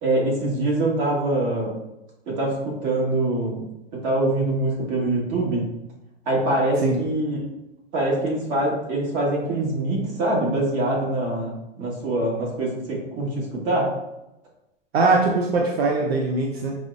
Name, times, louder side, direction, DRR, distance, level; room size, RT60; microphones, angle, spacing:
voice 1, 0.0-1.7 2.3-3.7 4.0-5.7 6.2-7.4 7.9-13.9, right 2 dB, 45° right, -3 dB, 1.4 m, -24 dB
voice 2, 14.9-16.8, right 3 dB, 80° right, -1 dB, 0.6 m, -21 dB
4.8 x 2.1 x 2.4 m, 0.90 s
hypercardioid pair, 110°, 30 cm